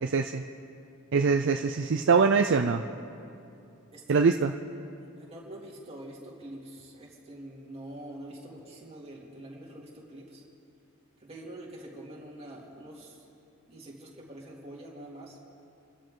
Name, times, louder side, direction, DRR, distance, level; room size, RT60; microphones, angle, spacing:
voice 1, 0.0-0.4 1.1-2.8 4.1-4.5, right 5 dB, 55° right, 5 dB, 0.5 m, -23 dB
voice 2, 3.9-4.4 5.0-10.4 11.2-13.3 13.7-15.4, right 1 dB, 30° right, -4 dB, 2.8 m, -45 dB
29.0 x 12.5 x 3.8 m, 2.7 s
head